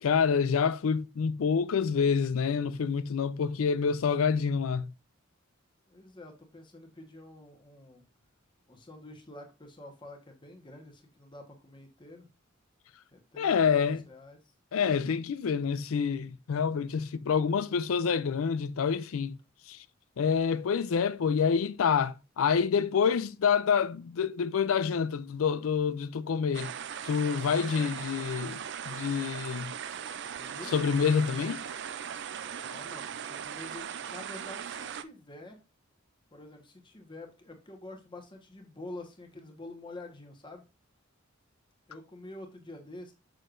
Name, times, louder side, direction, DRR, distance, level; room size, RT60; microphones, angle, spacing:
voice 1, 0.0-4.9 13.4-14.0 14.7-19.4 19.7-19.8 20.2-26.7 27.0-28.6 28.9-29.7 30.7-31.6, left 6 dB, 80° left, 0.4 m, -27 dB
voice 2, 5.9-8.0 8.7-12.3 13.1-14.5 27.6-28.0 30.2-30.8 32.4-35.6 36.3-40.6 41.9-43.1, left 1 dB, 25° left, 1.2 m, -47 dB
Jungle Creek Choco-Colombia, 26.5-35.0, right 8 dB, 55° right, 0.4 m, -39 dB
6.5 x 6.3 x 2.5 m
head